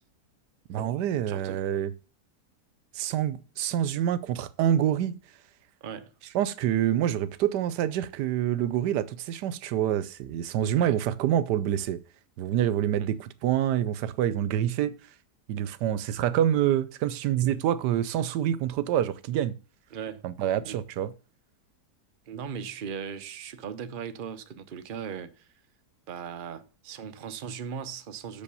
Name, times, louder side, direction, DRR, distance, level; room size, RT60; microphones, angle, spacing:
voice 1, 0.7-1.9 3.0-5.2 6.3-12.0 12.4-14.9 15.5-19.5 20.2-21.1, right 11 dB, 85° right, 1.2 m, -26 dB
voice 2, 1.3-1.6 5.8-6.1 10.8-11.0 13.0-13.1 19.9-20.3 20.6-20.8 22.3-25.5 26.1-28.4, right 7 dB, 40° right, 0.8 m, -38 dB
6.6 x 5.3 x 6.8 m
omnidirectional pair, 1.7 m